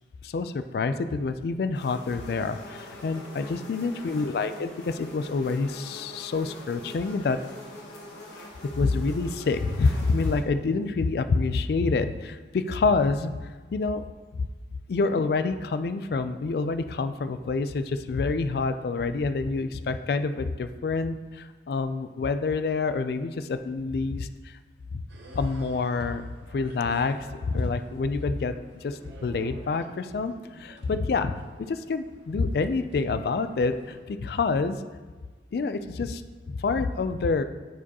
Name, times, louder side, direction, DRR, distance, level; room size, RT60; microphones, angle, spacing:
voice 1, 0.2-7.4 8.8-14.0 14.3-14.4 14.9-24.6 24.9-25.0 25.3-26.2 26.5-27.2 27.5-28.5 28.8-31.4 31.7-34.8 35.5-36.2 36.5-37.4, left 4 dB, 55° left, 10 dB, 0.3 m, -27 dB
sound 1, 1.7-10.4, left 1 dB, 75° left, 1.2 m, -44 dB
sound 2, 25.1-34.0, right 1 dB, 75° right, 0.8 m, -51 dB
9.1 x 4.6 x 2.9 m, 1.3 s
head